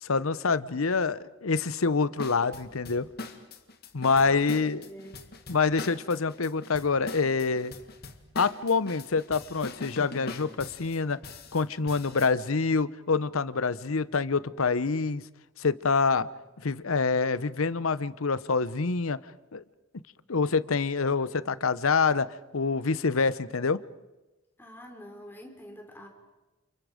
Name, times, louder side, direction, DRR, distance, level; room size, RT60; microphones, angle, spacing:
voice 1, 0.0-3.1 3.9-4.9 5.5-7.7 8.3-11.2 11.5-15.2 15.6-16.3 16.6-19.2 19.5-19.6 20.3-22.3 22.5-23.8, left 4 dB, 85° left, 16 dB, 0.9 m, -26 dB
sound 1, 2.2-12.3, left 2 dB, 50° left, 2.0 m, -42 dB
voice 2, 4.1-5.3 24.6-26.1, equal, 10° left, 3 dB, 3.6 m, -46 dB
29.5 x 29.5 x 5.2 m, 1.0 s
head